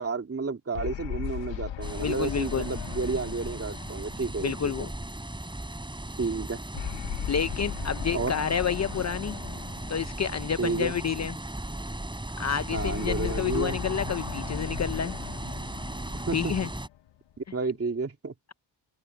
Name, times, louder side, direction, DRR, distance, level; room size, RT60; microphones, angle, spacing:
voice 1, 0.0-4.9 6.2-6.6 8.1-8.4 10.6-10.9 12.7-13.8 16.1-16.6 17.5-18.3, right 4 dB, 30° right, 2.8 m, -31 dB
sound 1, 0.7-5.3 6.7-11.1 12.7-17.3, left 10 dB, 70° left, 1.3 m, -38 dB
sound 2, 1.8-16.9, right 1 dB, 10° right, 4.6 m, -37 dB
voice 2, 2.0-2.7 4.4-4.9 7.3-9.4 9.9-11.4 12.4-15.1 16.3-16.7, left 7 dB, 35° left, 0.7 m, -29 dB
open air
cardioid pair, 85°, 46 cm